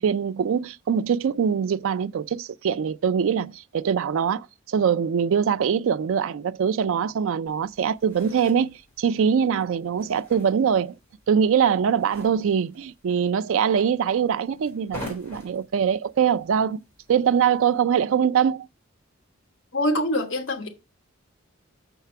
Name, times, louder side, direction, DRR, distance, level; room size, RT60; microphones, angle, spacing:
voice 1, 0.0-11.0 11.3-16.8 17.1-18.7, right 7 dB, 70° right, 0.3 m, -23 dB
sound 1, 7.5-17.8, left 1 dB, 10° left, 3.7 m, -46 dB
voice 2, 19.7-20.7, left 1 dB, 60° left, 1.2 m, -24 dB
6.6 x 4.5 x 5.7 m
head